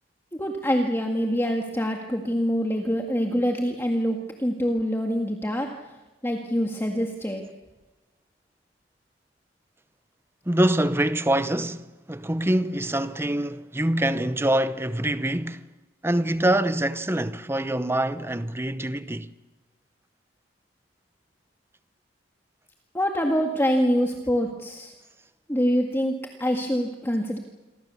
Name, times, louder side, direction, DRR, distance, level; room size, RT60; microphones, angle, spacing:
voice 1, 0.3-5.7 6.2-7.4 22.9-24.9 25.5-27.4, equal, 15° left, 1.9 m, -25 dB
voice 2, 10.5-15.7 16.0-19.3, right 1 dB, 10° right, 0.8 m, -25 dB
28.0 x 23.5 x 7.0 m
head